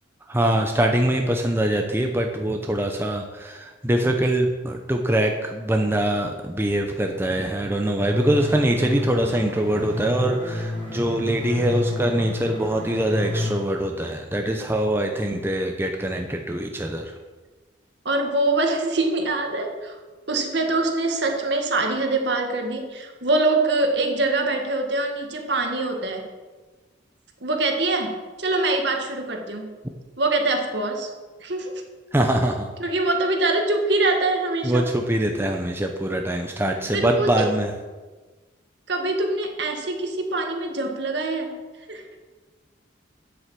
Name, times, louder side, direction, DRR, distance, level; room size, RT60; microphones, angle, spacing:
voice 1, 0.3-17.2 32.1-32.7 34.6-37.7, right 1 dB, 10° right, 3 dB, 0.7 m, -23 dB
sound 1, 8.0-13.5, left 2 dB, 10° left, 2.9 m, -30 dB
voice 2, 18.1-20.0 20.3-26.3 27.4-29.7 30.2-31.1 31.4-31.8 32.8-34.8 36.9-37.5 38.9-41.5 41.9-42.0, right 2 dB, 60° right, 3 dB, 1.8 m, -24 dB
9.5 x 7.9 x 7.6 m, 1.3 s
head